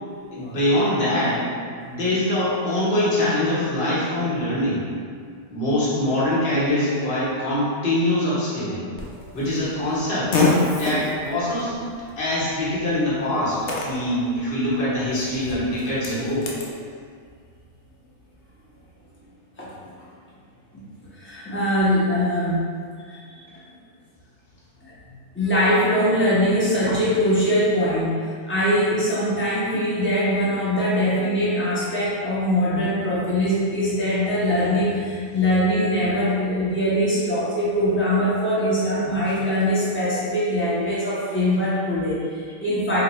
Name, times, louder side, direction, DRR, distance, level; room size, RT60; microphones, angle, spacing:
voice 1, 0.3-1.4 1.9-4.8 5.5-8.8 9.3-10.3 10.8-11.7 12.2-16.5, left 1 dB, 45° left, -8 dB, 1.1 m, -23 dB
Fart, 9.0-16.7, left 3 dB, 80° left, 0.5 m, -29 dB
voice 2, 21.1-22.6 23.1-23.2 25.3-43.0, equal, 15° left, -10 dB, 0.5 m, -22 dB
3.8 x 2.6 x 3.0 m, 2.1 s
omnidirectional pair, 1.6 m